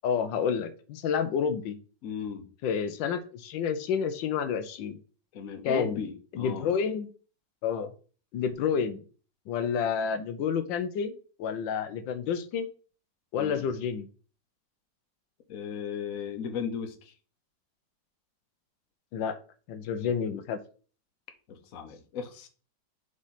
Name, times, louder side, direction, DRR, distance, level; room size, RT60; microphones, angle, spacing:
voice 1, 0.0-1.8 2.6-5.0 5.6-6.0 6.3-7.1 7.6-7.9 8.3-9.0 9.5-11.1 11.4-12.7 13.3-14.1 19.1-19.4 19.7-20.6, left 7 dB, 85° left, 1.4 m, -29 dB
voice 2, 2.0-2.5 5.3-6.7 13.3-13.7 15.5-17.1 21.5-22.5, left 7 dB, 55° left, 1.2 m, -36 dB
5.0 x 4.9 x 4.2 m
omnidirectional pair, 2.0 m